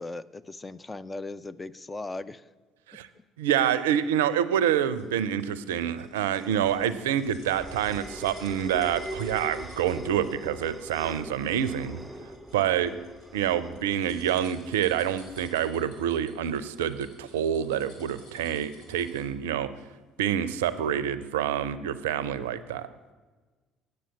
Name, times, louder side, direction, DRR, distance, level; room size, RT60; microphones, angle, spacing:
voice 1, 0.0-2.4 20.8-21.1, left 2 dB, 20° left, 14 dB, 0.4 m, -38 dB
voice 2, 3.4-12.0 12.5-12.9 13.3-19.7 20.2-22.9, right 9 dB, 80° right, 14 dB, 0.4 m, -27 dB
sound 1, 4.2-19.4 19.8-19.9, left 1 dB, 70° left, 2.8 m, -55 dB
sound 2, 6.6-15.5, equal, 5° right, 1.0 m, -42 dB
8.8 x 6.5 x 6.9 m, 1.3 s
hypercardioid pair, 55°, 0 cm